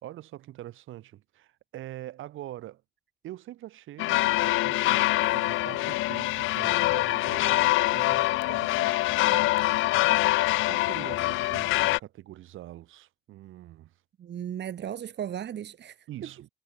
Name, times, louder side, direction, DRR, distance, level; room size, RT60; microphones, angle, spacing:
voice 1, 0.0-2.8 3.2-9.7 10.6-13.9 16.1-16.5, right 14 dB, 85° right, 3.9 m, -44 dB
sound 1, 4.0-12.0, left 18 dB, 85° left, 0.4 m, -24 dB
voice 2, 14.2-16.3, right 9 dB, 60° right, 2.3 m, -36 dB
cardioid pair, 90°, 20 cm